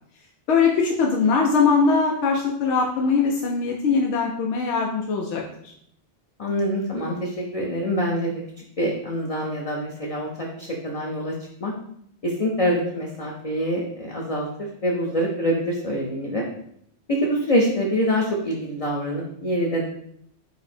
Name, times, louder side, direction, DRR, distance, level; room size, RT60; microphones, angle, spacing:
voice 1, 0.5-5.7, left 5 dB, 85° left, -1 dB, 0.9 m, -21 dB
voice 2, 6.4-8.4 8.8-11.3 11.6-11.7 12.2-16.4 17.1-19.8, equal, 40° left, -2 dB, 0.6 m, -25 dB
5.3 x 2.0 x 4.2 m, 0.70 s
omnidirectional pair, 1.2 m